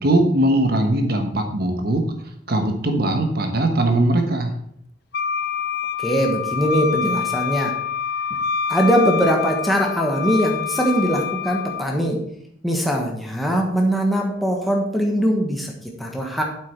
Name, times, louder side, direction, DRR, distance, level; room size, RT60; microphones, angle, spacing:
voice 1, 0.0-2.0 2.5-4.6, right 1 dB, 55° right, 5 dB, 1.2 m, -20 dB
Wind instrument woodwind instrument, 5.1-11.9, left 7 dB, 60° left, 0.7 m, -26 dB
voice 2, 6.0-7.7 8.7-12.2 12.6-16.4, equal, ahead, 0 dB, 1.3 m, -21 dB
8.4 x 8.0 x 4.6 m, 0.69 s
head